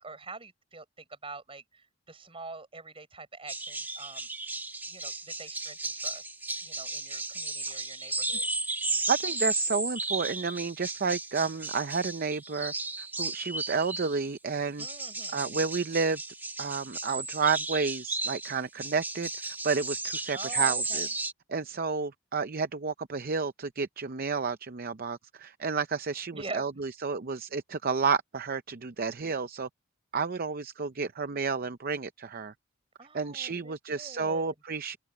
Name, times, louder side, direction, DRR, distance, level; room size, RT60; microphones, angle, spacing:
voice 1, 0.0-4.3 4.9-6.3 6.6-8.5 14.8-15.4 20.3-21.1 26.3-26.6 33.0-34.5, right 3 dB, 25° right, 6.8 m, -45 dB
sound 1, 3.5-14.3 14.8-21.3, right 3 dB, 10° right, 2.1 m, -34 dB
voice 2, 9.1-14.9 15.3-16.2 16.6-21.1 21.5-29.7 30.1-32.5 33.1-35.0, right 5 dB, 45° right, 0.6 m, -31 dB
head